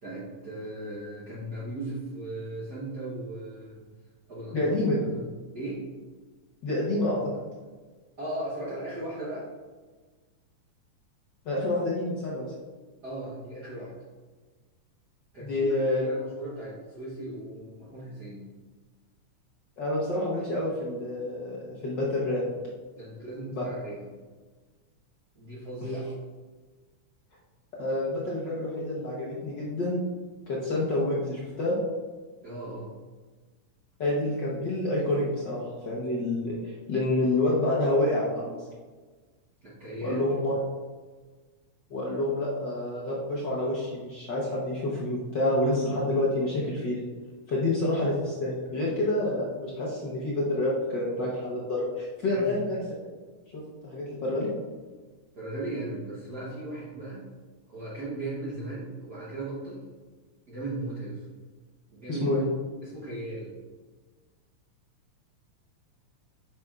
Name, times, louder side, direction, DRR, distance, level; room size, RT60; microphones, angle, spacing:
voice 1, 0.0-3.8 4.3-4.7 5.1-5.3 5.5-5.8 8.2-9.5 13.0-13.9 15.3-18.5 22.9-24.1 25.3-26.1 32.4-32.9 39.6-40.2 52.3-52.5 55.4-57.3 57.7-59.9 60.5-61.3 61.9-62.3 62.8-63.6, right 2 dB, 55° right, -7 dB, 1.1 m, -37 dB
voice 2, 4.5-5.0 6.6-7.2 11.4-12.5 15.4-16.0 19.8-22.4 23.5-23.6 27.8-30.0 30.5-31.8 34.0-38.7 40.0-40.5 41.9-47.0 47.5-52.8 53.5-54.5 62.1-62.4, left 1 dB, 65° left, -5 dB, 1.1 m, -28 dB
8.3 x 5.9 x 2.4 m, 1.4 s
omnidirectional pair, 3.4 m